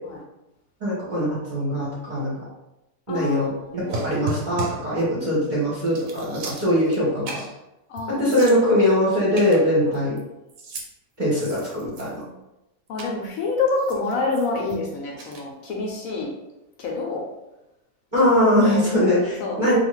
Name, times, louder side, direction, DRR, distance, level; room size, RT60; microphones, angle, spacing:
voice 1, 0.8-2.3 3.1-7.4 8.2-10.2 11.2-12.2 18.1-19.8, left 1 dB, 40° right, -7 dB, 0.8 m, -21 dB
voice 2, 3.1-4.2 5.2-5.6 7.9-8.3 9.9-10.0 11.7-12.3 12.9-16.3 16.8-17.2 18.2-18.3 18.6-19.1 19.4-19.6, left 3 dB, 70° left, -1 dB, 0.9 m, -28 dB
sound 1, 3.9-4.9 5.4-5.6 5.9-7.0 7.3-7.6 8.0-8.1 8.3-8.9 9.4-10.2 10.5-10.9 11.3-12.3 13.0-13.1 13.7-14.8 15.2-15.4, right 2 dB, 70° right, 0.9 m, -35 dB
2.7 x 2.4 x 3.0 m, 0.93 s
omnidirectional pair, 1.6 m